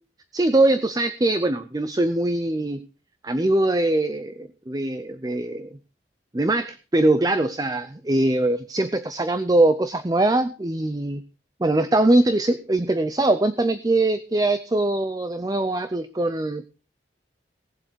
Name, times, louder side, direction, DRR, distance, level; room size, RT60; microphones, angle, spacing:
voice 1, 0.3-2.9 3.2-5.7 6.3-11.2 11.6-16.7, right 2 dB, 20° right, 11 dB, 0.5 m, -22 dB
18.0 x 7.7 x 4.6 m, 0.33 s
head